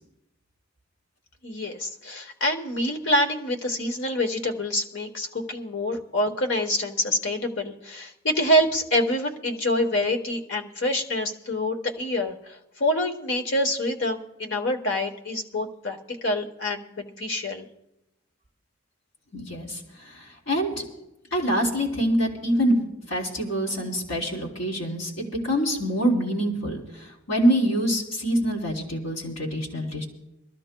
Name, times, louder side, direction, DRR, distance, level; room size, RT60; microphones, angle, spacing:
voice 1, 1.4-17.7, left 1 dB, 60° left, 3 dB, 1.1 m, -26 dB
voice 2, 19.3-20.8 21.3-22.8 23.1-30.1, equal, 80° left, -2 dB, 3.3 m, -25 dB
24.0 x 13.5 x 2.2 m, 0.91 s
head